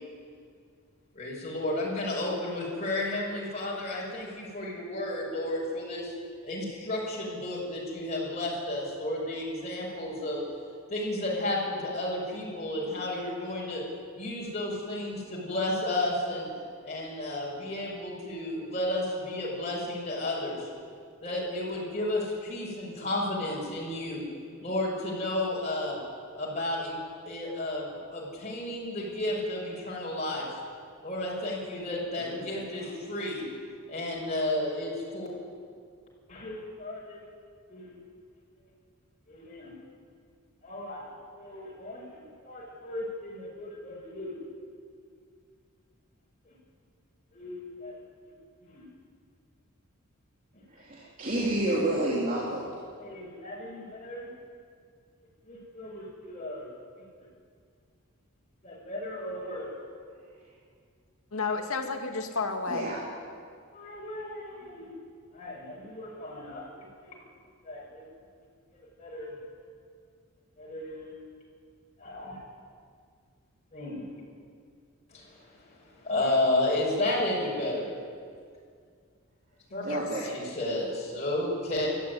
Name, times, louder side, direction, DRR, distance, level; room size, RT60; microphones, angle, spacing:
voice 1, 1.1-6.1 6.4-10.4 10.9-13.8 14.2-16.5 16.8-20.7 21.2-24.2 24.6-26.0 26.3-27.0 27.3-30.5 31.0-33.5 33.9-35.3 36.3-37.2 37.7-37.9 39.3-39.7 40.6-41.1 41.4-42.2 42.4-44.3 47.3-47.9 48.6-48.8 53.0-54.3 55.5-56.6 58.6-59.7 63.7-64.9 65.3-67.1 67.6-68.0 69.0-69.3 70.6-71.2 72.0-72.4 73.7-74.1 75.1-77.9 79.7-79.8 80.2-81.9, left 1 dB, 30° left, -5 dB, 6.2 m, -33 dB
voice 2, 50.8-52.7 62.7-63.0 79.8-80.2, right 1 dB, 40° right, -5 dB, 3.2 m, -29 dB
voice 3, 61.3-62.9 79.7-80.3, left 4 dB, 80° left, 4 dB, 2.2 m, -32 dB
21.5 x 14.0 x 9.6 m, 2.2 s
head